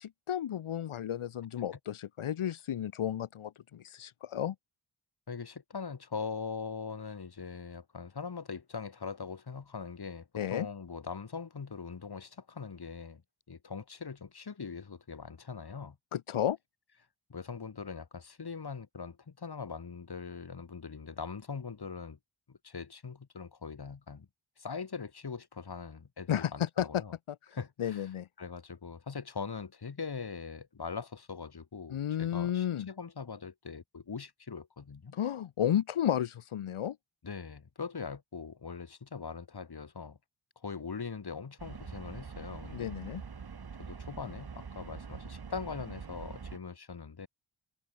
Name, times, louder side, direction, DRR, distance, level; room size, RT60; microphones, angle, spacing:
voice 1, 0.0-4.5 10.4-10.7 16.1-16.6 26.3-27.0 27.3-28.3 31.9-32.9 35.1-37.0 42.7-43.2, left 10 dB, 85° left, 1.1 m, -33 dB
voice 2, 5.3-13.2 13.5-16.0 17.3-22.2 22.5-24.3 24.6-27.1 27.5-28.1 28.4-35.2 37.2-40.2 40.6-43.0 43.9-47.3, left 5 dB, 50° left, 4.3 m, -41 dB
sound 1, 41.6-46.6, right 5 dB, 50° right, 2.8 m, -44 dB
wide cardioid pair, 140°, 48 cm